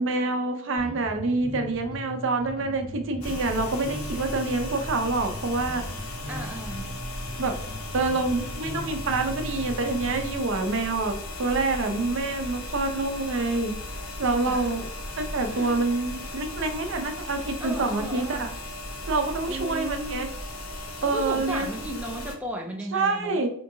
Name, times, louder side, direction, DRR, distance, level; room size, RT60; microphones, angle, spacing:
voice 1, 0.0-5.8 7.4-7.5 7.9-13.8 14.2-14.8 15.2-18.5 19.1-20.3 21.0-21.7 22.9-23.5, right 3 dB, 60° right, 6 dB, 0.5 m, -27 dB
Bass guitar, 0.8-10.4, left 1 dB, 20° left, 0.6 m, -39 dB
sound 1, 3.2-22.4, left 1 dB, 75° left, 0.7 m, -36 dB
voice 2, 6.3-7.0 14.5-14.7 15.5-15.8 17.6-18.6 19.5-20.2 21.0-23.4, right 1 dB, 5° right, 1 dB, 0.3 m, -35 dB
4.4 x 2.7 x 2.6 m, 0.68 s
head